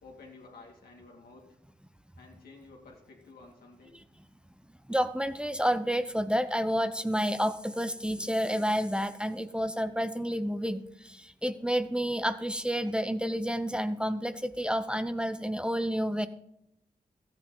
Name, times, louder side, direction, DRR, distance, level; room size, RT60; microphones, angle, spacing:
voice 1, 0.0-1.6 2.2-4.0, left 3 dB, 85° left, -1 dB, 2.3 m, -52 dB
voice 2, 4.9-16.3, equal, 5° right, 10 dB, 0.7 m, -30 dB
13.5 x 8.9 x 3.9 m, 0.79 s
cardioid pair, 45°, 15 cm